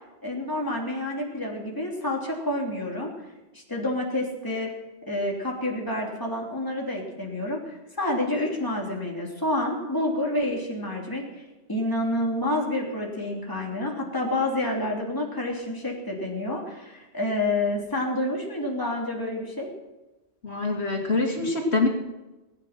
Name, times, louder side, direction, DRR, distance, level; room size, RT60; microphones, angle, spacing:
voice 1, 0.2-3.1 3.5-4.7 5.1-11.4 11.7-19.7, left 1 dB, 20° left, -2 dB, 3.3 m, -28 dB
voice 2, 20.4-21.9, left 3 dB, 70° left, 0 dB, 2.9 m, -24 dB
20.5 x 9.6 x 6.0 m, 1.1 s
omnidirectional pair, 1.2 m